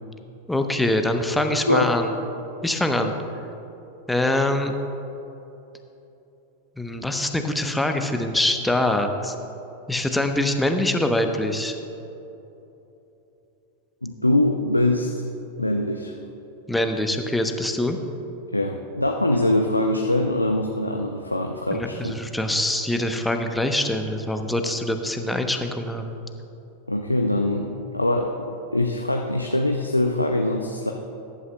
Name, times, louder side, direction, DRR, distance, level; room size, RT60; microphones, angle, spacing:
voice 1, 0.5-2.1 2.6-3.1 4.1-4.7 6.8-9.3 9.9-11.7 16.7-18.0 21.7-26.2, left 1 dB, 5° left, 5 dB, 0.9 m, -24 dB
voice 2, 14.0-15.1 15.6-16.1 18.5-22.1 26.9-30.9, left 1 dB, 85° left, 2 dB, 0.6 m, -23 dB
21.0 x 11.0 x 2.3 m, 3.0 s
figure-of-eight pair, 90°, 0 cm